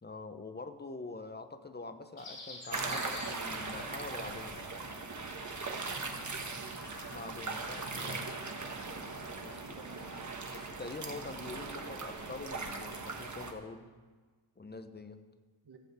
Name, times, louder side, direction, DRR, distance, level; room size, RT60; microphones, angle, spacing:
voice 1, 0.0-4.6 7.1-8.3 9.4-9.6 10.5-13.9 14.6-15.2, left 3 dB, 20° left, 9 dB, 0.8 m, -45 dB
Chirp tweet, 2.2-10.7, left 2 dB, 80° left, 3.6 m, -52 dB
sound 1, 2.7-13.5, right 3 dB, 35° right, 1.4 m, -39 dB
voice 2, 6.1-7.0 9.4-10.4 15.6-15.8, right 5 dB, 50° right, 3 dB, 1.8 m, -53 dB
14.5 x 5.1 x 8.2 m, 1.4 s
cardioid pair, 75°, 50 cm